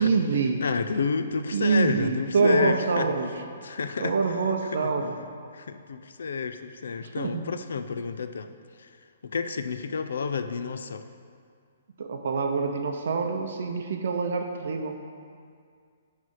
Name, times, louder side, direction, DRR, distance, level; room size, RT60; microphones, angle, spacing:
voice 1, 0.0-0.6 1.5-3.3 4.0-5.2 7.0-7.4 12.0-15.0, right 4 dB, 55° right, 4 dB, 0.6 m, -25 dB
voice 2, 0.6-3.1 3.6-4.2 4.8-4.9 5.5-8.5 8.8-8.9 9.2-11.0, left 5 dB, 75° left, 9 dB, 0.4 m, -30 dB
9.3 x 3.2 x 6.4 m, 2.2 s
hypercardioid pair, 175°, 0 cm